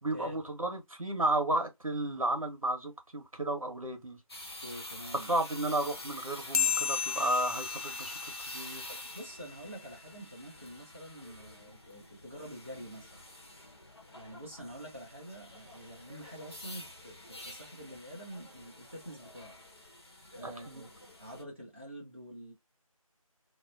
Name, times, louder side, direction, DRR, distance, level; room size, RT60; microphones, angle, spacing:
voice 1, 0.0-4.2 5.3-8.9 20.4-20.8, right 1 dB, 70° right, 1.1 m, -33 dB
sound 1, 4.3-21.4, left 1 dB, 45° left, 0.8 m, -47 dB
voice 2, 4.6-5.3 8.9-13.2 14.1-19.5 20.3-20.9 21.2-22.5, equal, 20° right, 0.6 m, -47 dB
sound 2, 6.5-9.4, left 7 dB, 75° left, 0.4 m, -34 dB
2.8 x 2.0 x 2.4 m
figure-of-eight pair, 170°, 19 cm